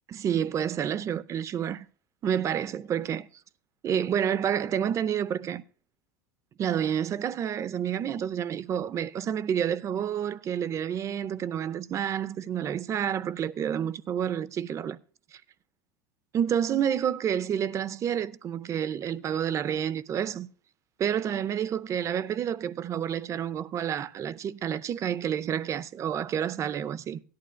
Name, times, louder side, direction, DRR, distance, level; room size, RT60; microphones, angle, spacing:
voice 1, 0.1-1.9 2.2-3.3 3.8-5.6 6.6-15.0 15.3-15.4 16.3-20.5 21.0-27.2, right 9 dB, 35° right, 0.6 m, -29 dB
16.5 x 11.5 x 2.2 m
supercardioid pair, 110°, 9 cm